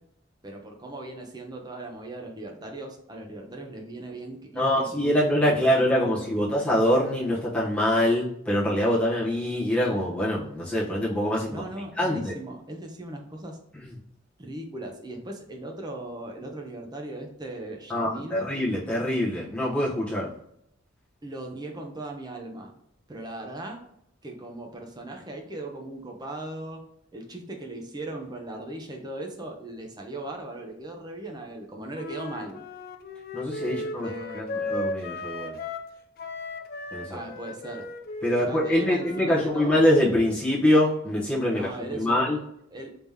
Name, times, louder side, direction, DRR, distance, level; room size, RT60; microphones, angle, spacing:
voice 1, 0.4-5.2 5.5-6.4 11.5-13.6 14.4-18.5 21.2-22.7 23.1-23.8 24.2-26.8 27.1-32.6 33.7-34.8 37.1-37.9 38.5-39.8 41.5-42.2 42.7-42.9, right 2 dB, 20° right, 2 dB, 0.7 m, -38 dB
voice 2, 4.6-11.6 11.9-12.3 13.8-13.9 17.9-20.3 33.3-34.1 34.3-35.5 36.9-37.2 38.2-42.4, left 1 dB, 5° left, -7 dB, 0.9 m, -24 dB
Wind instrument woodwind instrument, 31.9-35.9 36.2-40.1, left 2 dB, 50° left, 0.4 m, -36 dB
3.4 x 2.9 x 3.5 m, 0.74 s
head